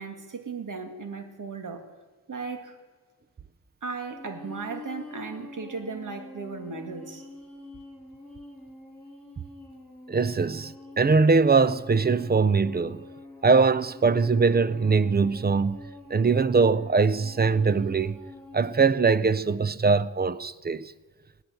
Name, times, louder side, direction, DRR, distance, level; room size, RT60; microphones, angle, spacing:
voice 1, 0.0-1.9 2.3-2.8 3.8-7.3, right 4 dB, 60° right, 2.1 m, -36 dB
sound 1, 4.1-18.9, left 1 dB, 5° left, 6.6 m, -46 dB
voice 2, 10.1-13.0 13.4-15.8 16.1-18.2 18.5-20.9, right 4 dB, 30° right, 0.5 m, -22 dB
19.0 x 8.2 x 9.1 m
wide cardioid pair, 90°, 35 cm